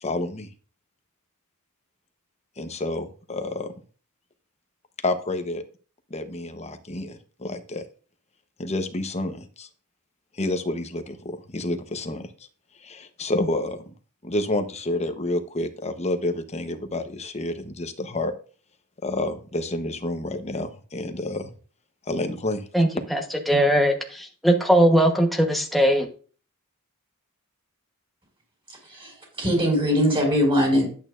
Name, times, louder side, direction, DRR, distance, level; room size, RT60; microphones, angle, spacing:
voice 1, 0.0-0.5 2.6-3.7 5.0-5.6 6.1-7.8 8.6-9.7 10.3-12.3 12.8-13.8 14.2-18.3 19.0-21.5 22.1-22.7, left 2 dB, 30° left, 1.0 m, -29 dB
voice 2, 22.7-23.2 23.5-26.1, equal, ahead, 1.2 m, -20 dB
voice 3, 28.7-30.8, equal, 25° right, 4.9 m, -22 dB
11.0 x 8.8 x 2.6 m
head